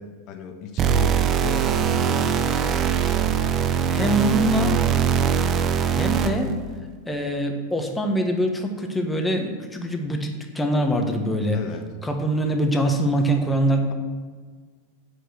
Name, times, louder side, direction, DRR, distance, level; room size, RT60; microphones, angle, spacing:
voice 1, 0.0-3.3 11.5-11.8, left 5 dB, 50° left, 5 dB, 1.2 m, -35 dB
sound 1, 0.8-6.5, right 8 dB, 35° right, 0.7 m, -22 dB
voice 2, 3.9-4.8 5.8-6.6 7.1-11.6 12.0-13.9, equal, 10° left, 3 dB, 1.3 m, -24 dB
8.0 x 4.9 x 6.3 m, 1.5 s
hypercardioid pair, 100°, 0 cm